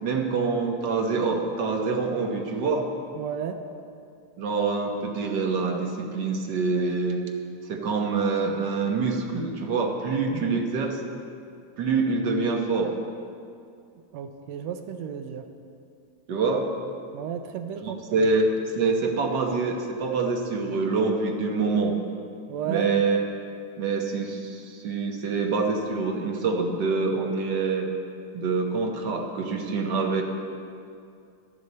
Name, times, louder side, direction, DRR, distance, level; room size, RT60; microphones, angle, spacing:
voice 1, 0.0-2.9 4.4-7.2 7.7-11.0 11.8-12.9 16.3-16.7 17.7-18.5 18.7-21.9 22.7-23.2 23.8-27.9 28.3-30.2, right 4 dB, 60° right, 2 dB, 1.1 m, -26 dB
voice 2, 3.2-3.6 10.3-10.4 14.1-15.4 17.1-18.3 22.5-22.9, right 8 dB, 75° right, 7 dB, 1.7 m, -33 dB
15.5 x 11.0 x 4.2 m, 2.4 s
omnidirectional pair, 3.4 m